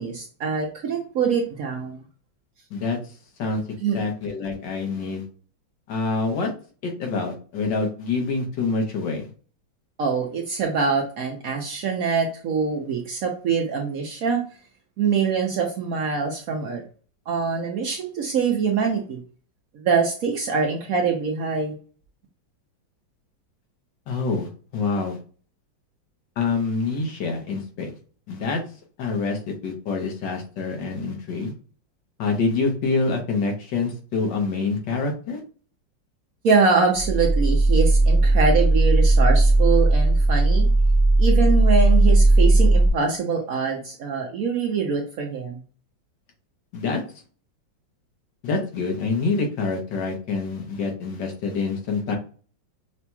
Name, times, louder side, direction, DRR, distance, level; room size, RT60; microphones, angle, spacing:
voice 1, 0.0-2.0 3.8-4.0 10.0-14.4 15.0-16.8 17.3-19.2 19.7-21.7 36.4-40.7 41.2-45.6, right 5 dB, 65° right, 1 dB, 0.9 m, -24 dB
voice 2, 3.9-5.2 5.9-6.5 6.8-9.3 24.1-25.2 26.4-27.9 28.3-28.6 29.0-31.5 32.2-35.4 46.7-47.0 48.4-52.2, left 4 dB, 70° left, 2 dB, 1.6 m, -26 dB
sound 1, 36.9-42.9, right 2 dB, 55° left, 1.4 m, -17 dB
5.9 x 2.8 x 2.3 m, 0.39 s
omnidirectional pair, 2.0 m